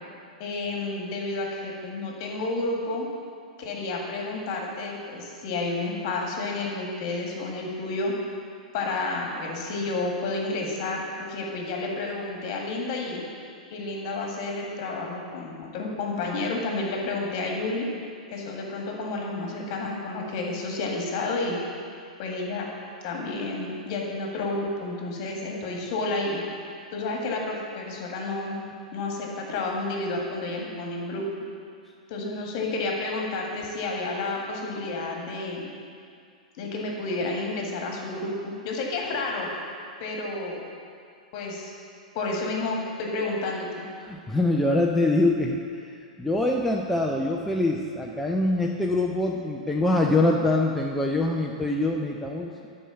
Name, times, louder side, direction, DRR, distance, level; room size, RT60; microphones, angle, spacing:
voice 1, 0.4-3.1 3.6-8.1 8.7-13.2 13.7-17.9 18.3-21.6 22.2-22.7 23.0-26.4 26.9-28.6 28.9-31.2 32.1-35.7 36.6-39.5 40.0-40.6 41.3-41.7 42.1-43.8, left 2 dB, 40° left, 0 dB, 1.8 m, -30 dB
voice 2, 44.0-52.5, left 2 dB, 5° left, -1 dB, 0.5 m, -24 dB
10.0 x 4.7 x 6.8 m, 2.3 s
figure-of-eight pair, 105°, 4 cm